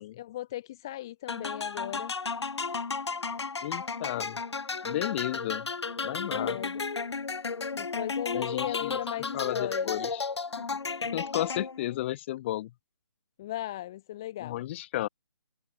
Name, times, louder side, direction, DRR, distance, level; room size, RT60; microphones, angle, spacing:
voice 1, 0.0-2.1 6.3-6.8 7.8-9.9 10.6-10.7 13.4-14.6, left 14 dB, 10° left, 0.3 m, -37 dB
sound 1, 1.3-11.9, left 4 dB, 70° left, 0.7 m, -33 dB
voice 2, 3.6-4.4 4.8-5.7 6.0-6.6 8.3-9.0 9.3-10.3 11.1-12.7 14.4-15.1, left 15 dB, 25° left, 2.6 m, -33 dB
figure-of-eight pair, 145°, 15 cm